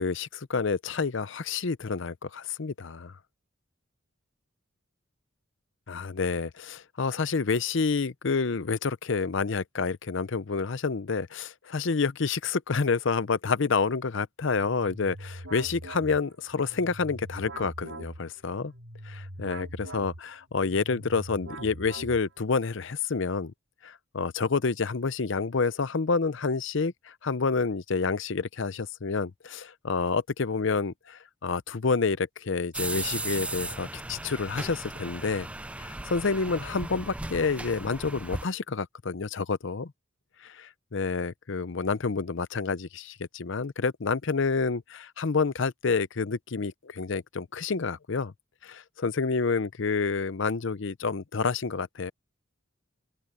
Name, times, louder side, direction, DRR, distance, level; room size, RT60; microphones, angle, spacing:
voice 1, 0.0-3.2 5.9-18.7 19.0-23.5 23.8-35.5 35.8-39.9 40.4-48.3 48.6-52.1, left 4 dB, 60° left, 0.7 m, -29 dB
sound 1, 14.5-22.5, right 1 dB, 80° right, 5.5 m, -43 dB
sound 2, 32.7-38.5, right 2 dB, 5° right, 0.4 m, -36 dB
open air
head